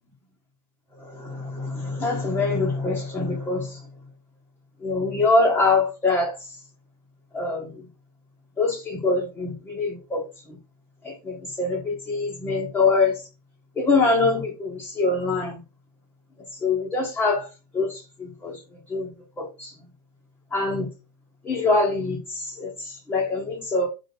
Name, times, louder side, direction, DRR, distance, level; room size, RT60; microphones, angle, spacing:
voice 1, 1.0-3.8 4.8-6.6 7.3-7.8 8.6-10.6 11.0-13.2 13.8-15.6 16.5-17.5 17.7-18.6 18.9-19.1 19.4-19.7 20.5-20.9 21.4-23.9, left 3 dB, 10° left, 1.1 m, -24 dB
5.7 x 3.9 x 4.9 m
supercardioid pair, 175°, 20 cm